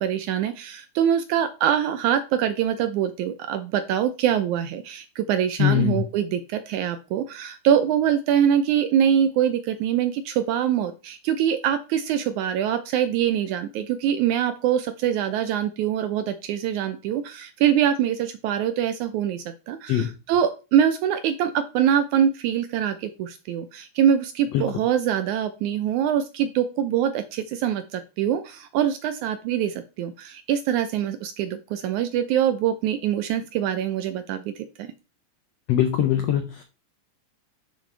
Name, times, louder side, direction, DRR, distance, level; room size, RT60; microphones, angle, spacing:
voice 1, 0.0-34.9, right 9 dB, 80° right, 10 dB, 1.8 m, -24 dB
voice 2, 5.6-6.0 19.9-20.1 24.5-24.6 35.7-36.6, left 11 dB, 80° left, 7 dB, 1.5 m, -21 dB
10.0 x 6.7 x 3.3 m, 0.32 s
omnidirectional pair, 3.9 m